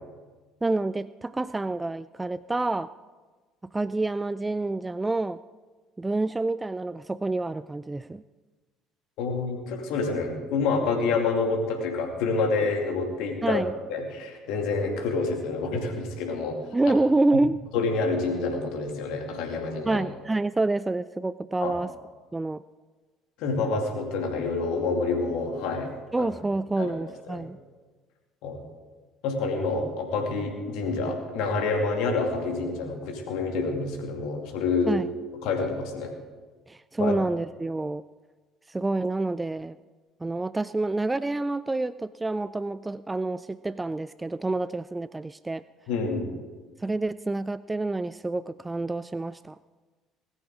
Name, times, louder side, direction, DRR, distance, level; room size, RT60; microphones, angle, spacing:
voice 1, 0.6-2.9 3.7-5.4 6.0-8.2 13.4-13.7 16.7-17.6 19.9-21.9 22.3-22.6 26.1-27.6 34.9-35.1 36.7-38.0 38.7-39.8 40.2-45.6 46.8-49.6, right 2 dB, 15° right, 16 dB, 0.3 m, -28 dB
voice 2, 9.2-13.6 13.9-16.6 17.7-20.0 21.6-21.7 23.4-25.9 26.2-26.3 26.8-26.9 27.3-27.5 28.4-28.6 29.2-35.0 35.4-36.1 37.0-37.2 45.9-46.3, left 4 dB, 65° left, 3 dB, 2.5 m, -28 dB
19.5 x 13.5 x 3.7 m, 1.3 s
figure-of-eight pair, 60°, 0 cm